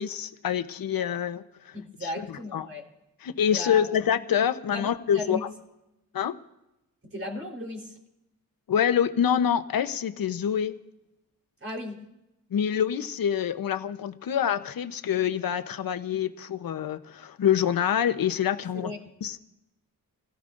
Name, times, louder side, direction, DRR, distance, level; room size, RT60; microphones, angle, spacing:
voice 1, 0.0-1.7 2.0-2.7 3.2-5.4 6.1-6.4 8.7-10.8 12.5-18.9 19.2-19.4, left 9 dB, 80° left, 10 dB, 0.9 m, -26 dB
voice 2, 1.7-2.8 3.5-3.9 4.7-5.4 7.0-8.0 11.6-12.0 18.7-19.0, left 2 dB, 40° right, 0 dB, 3.9 m, -36 dB
28.5 x 16.5 x 2.6 m, 0.92 s
wide cardioid pair, 90°, 35 cm